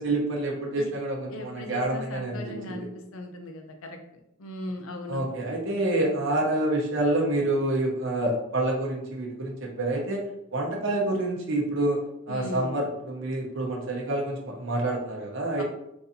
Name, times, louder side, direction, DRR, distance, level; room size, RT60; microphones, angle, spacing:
voice 1, 0.0-2.9 5.1-10.3 10.5-12.0 12.3-15.6, right 1 dB, 60° right, -1 dB, 0.9 m, -27 dB
voice 2, 1.3-5.2 12.3-12.7 15.6-15.7, left 1 dB, 75° left, 4 dB, 0.6 m, -38 dB
3.9 x 2.6 x 2.7 m, 0.81 s
head